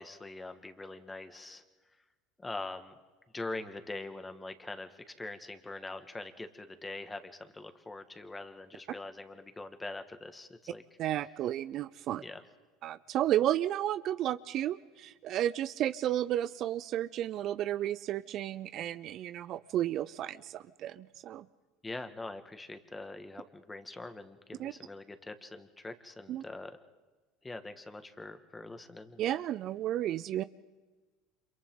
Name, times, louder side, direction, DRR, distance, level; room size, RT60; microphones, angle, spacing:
voice 1, 0.0-1.6 2.4-2.9 3.3-10.8 12.2-12.4 21.8-26.7 27.4-29.2, left 2 dB, 15° left, 8 dB, 2.0 m, -43 dB
voice 2, 11.0-12.2 12.8-21.5 24.6-24.7 26.3-26.4 29.2-30.4, right 12 dB, 50° right, 15 dB, 0.6 m, -32 dB
30.0 x 27.0 x 3.9 m, 1.3 s
hypercardioid pair, 75°, 0 cm